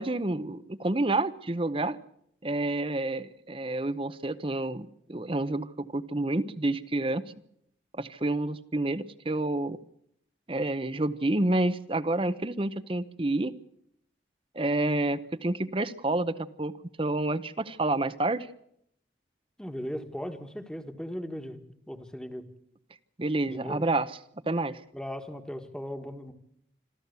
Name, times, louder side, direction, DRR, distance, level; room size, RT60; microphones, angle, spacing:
voice 1, 0.0-2.0 2.4-7.3 7.9-9.8 10.5-13.5 14.5-16.7 17.0-18.5 23.2-24.2 24.5-24.8, right 2 dB, 30° right, 13 dB, 0.8 m, -29 dB
voice 2, 19.6-21.6 21.9-22.4 23.5-23.8 24.9-26.3, equal, 5° left, 7 dB, 1.6 m, -37 dB
26.5 x 13.5 x 8.2 m, 0.72 s
head